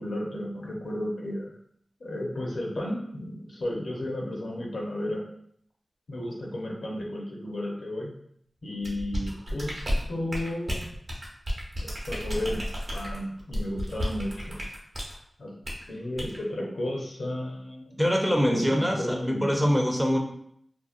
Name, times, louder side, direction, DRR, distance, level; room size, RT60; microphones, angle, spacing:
voice 1, 0.0-1.5 2.0-5.2 6.1-8.1 8.6-10.8 12.1-12.6 12.9-14.6 15.4-15.5 15.9-18.0 18.3-19.6, left 1 dB, 80° left, -2 dB, 0.6 m, -33 dB
sound 1, 8.8-15.2 15.6-15.8 16.2-16.4, equal, 60° right, 0.7 m, -32 dB
voice 2, 18.0-20.2, equal, ahead, 1 dB, 0.4 m, -24 dB
2.6 x 2.0 x 2.4 m, 0.68 s
wide cardioid pair, 65°, 0 cm